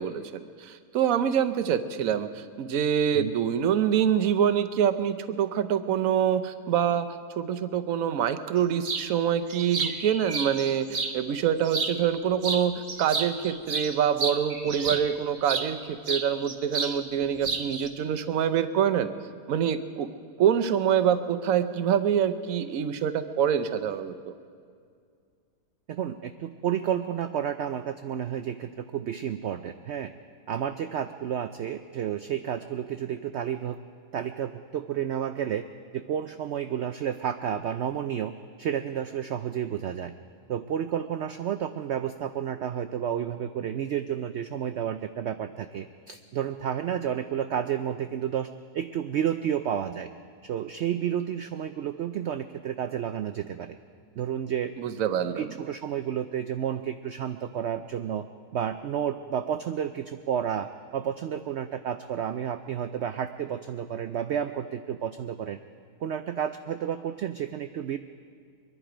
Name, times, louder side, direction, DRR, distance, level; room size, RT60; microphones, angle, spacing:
voice 1, 0.0-7.1 7.4-19.1 19.5-20.1 20.4-24.3 54.8-55.5, right 8 dB, 65° right, 9 dB, 1.1 m, -25 dB
sound 1, 8.8-9.1 9.5-11.2 11.6-12.2 12.4-15.7 16.1-17.0 17.2-17.9, right 4 dB, 40° right, 0.9 m, -31 dB
voice 2, 25.9-30.1 30.5-33.8 34.1-35.7 35.9-38.3 38.6-40.1 40.5-50.1 50.4-53.8 54.2-54.7 55.4-58.2 58.5-65.6 66.0-68.0, right 9 dB, 85° right, 9 dB, 0.6 m, -31 dB
23.5 x 11.0 x 5.0 m, 2.2 s
omnidirectional pair, 1.7 m